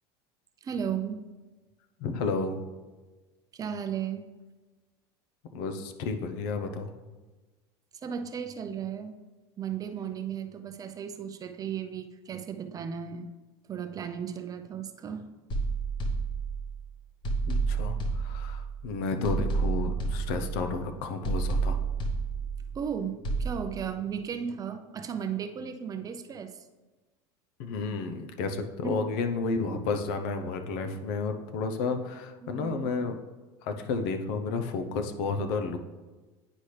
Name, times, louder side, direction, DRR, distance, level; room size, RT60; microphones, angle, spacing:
voice 1, 0.6-1.2 3.5-4.3 8.0-9.2 9.6-13.3 13.7-15.3 22.7-26.7 28.8-29.1 29.7-29.8 32.4-32.9, right 7 dB, 30° right, 7 dB, 0.5 m, -35 dB
voice 2, 2.0-2.6 5.5-6.9 17.5-21.8 27.6-33.2 33.6-35.8, left 4 dB, 70° left, 7 dB, 0.7 m, -31 dB
sound 1, 15.5-16.8 17.2-18.8 19.2-20.8 21.2-22.8 23.2-23.5, right 4 dB, 35° left, 1.1 m, -30 dB
9.8 x 4.2 x 3.3 m, 1.2 s
supercardioid pair, 115°, 13 cm